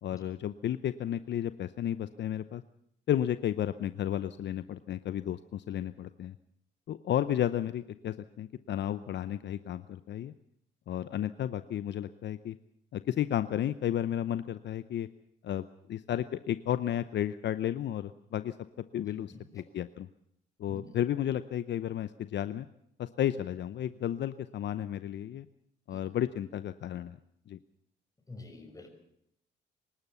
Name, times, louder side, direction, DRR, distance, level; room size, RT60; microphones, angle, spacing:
voice 1, 0.0-2.6 3.1-6.4 6.9-10.3 10.9-12.6 12.9-15.1 15.4-18.5 18.9-20.1 20.6-22.7 23.0-25.5 25.9-27.2 27.5-27.6, left 11 dB, 65° left, 13 dB, 0.8 m, -33 dB
voice 2, 20.7-21.0 25.9-26.0 28.3-28.9, left 2 dB, 15° left, 5 dB, 6.0 m, -47 dB
25.0 x 13.0 x 8.2 m, 0.74 s
cardioid pair, 90°, 20 cm